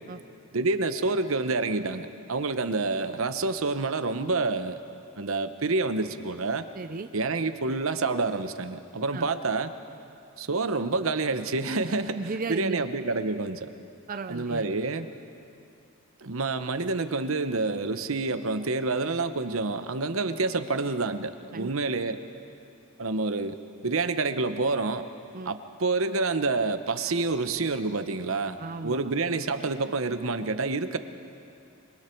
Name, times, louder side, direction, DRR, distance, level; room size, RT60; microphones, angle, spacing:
voice 1, 0.5-4.8 5.2-6.6 7.1-9.7 10.4-12.2 12.5-13.7 14.3-15.1 16.2-22.2 23.0-23.6 23.8-25.0 25.5-28.6 28.8-31.0, right 3 dB, 80° right, 10 dB, 0.9 m, -28 dB
voice 2, 6.7-7.1 9.1-9.3 12.1-12.8 14.1-14.6 21.5-21.7 25.3-25.5 28.6-29.1, right 3 dB, 40° right, 8 dB, 0.6 m, -35 dB
26.0 x 23.5 x 4.6 m, 2.6 s
head